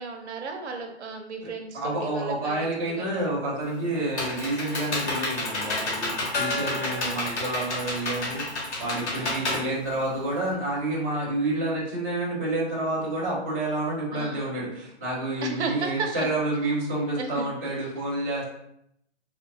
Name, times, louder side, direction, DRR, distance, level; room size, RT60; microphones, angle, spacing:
voice 1, 0.0-3.2 6.5-6.9 9.2-9.7 14.1-14.6 15.4-16.3 17.2-17.5, right 4 dB, 75° right, 4 dB, 0.8 m, -35 dB
voice 2, 1.4-18.4, right 1 dB, 15° right, -13 dB, 0.3 m, -29 dB
Computer keyboard, 3.6-10.5, left 2 dB, 75° left, 1.4 m, -30 dB
Gong, 6.3-9.6, left 3 dB, 55° left, 0.6 m, -36 dB
3.4 x 2.5 x 2.8 m, 0.76 s
hypercardioid pair, 160°, 34 cm